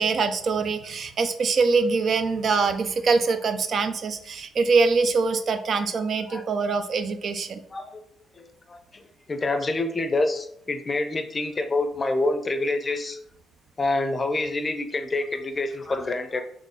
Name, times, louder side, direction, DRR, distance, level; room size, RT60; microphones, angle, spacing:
voice 1, 0.0-7.6, right 4 dB, 55° right, 8 dB, 0.5 m, -23 dB
voice 2, 7.7-8.0 8.3-9.0 9.3-13.2 13.8-16.4, left 2 dB, 30° left, 7 dB, 0.6 m, -27 dB
4.1 x 3.2 x 3.6 m, 0.68 s
cardioid pair, 90°, 0 cm